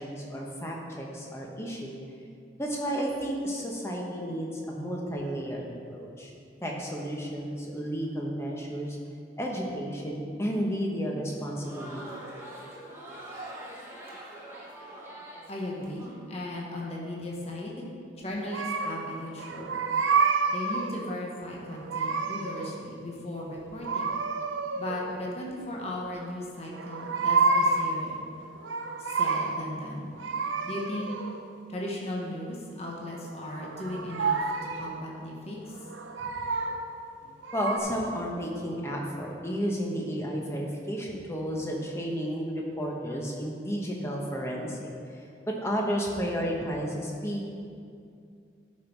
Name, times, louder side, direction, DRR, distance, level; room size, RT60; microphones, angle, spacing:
voice 1, 0.0-1.9 2.6-6.3 6.6-9.0 9.4-12.2 36.2-36.4 37.5-44.9 45.5-47.5, equal, 15° left, -1 dB, 1.0 m, -32 dB
Crowd, 11.3-16.1, right 1 dB, 15° right, 1.2 m, -44 dB
voice 2, 15.5-17.9 18.2-19.8 20.5-24.2 24.7-28.2 29.1-30.1 30.6-31.1 31.7-35.6, left 1 dB, 35° left, -3 dB, 1.2 m, -37 dB
sound 1, 18.5-19.1 19.4-21.0 21.7-22.8 23.8-25.2 26.7-28.0 28.5-29.7 30.2-31.5 33.3-34.9 35.7-36.9 37.4-37.8, right 4 dB, 90° right, 0.7 m, -29 dB
11.5 x 5.4 x 4.6 m, 2.4 s
head